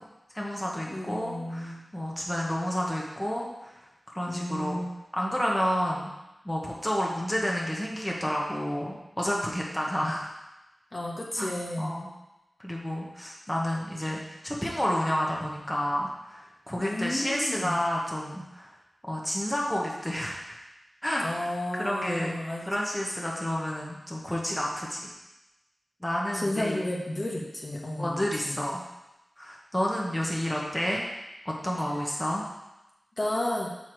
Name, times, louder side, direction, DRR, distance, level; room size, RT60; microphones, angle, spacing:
voice 1, 0.3-3.8 4.1-4.8 5.1-6.1 6.4-10.3 11.4-11.5 11.8-12.1 12.6-18.7 19.0-20.6 21.0-22.3 22.6-25.1 26.0-26.8 28.0-28.8 29.4-31.0 31.4-32.4, equal, 10° left, -3 dB, 1.1 m, -30 dB
voice 2, 0.9-1.8 4.3-5.0 10.0-10.2 10.9-12.0 16.8-17.8 21.2-22.6 26.3-28.6 33.2-33.7, left 1 dB, 45° left, -3 dB, 1.3 m, -32 dB
5.8 x 4.8 x 4.5 m, 0.98 s
cardioid pair, 50°, 0 cm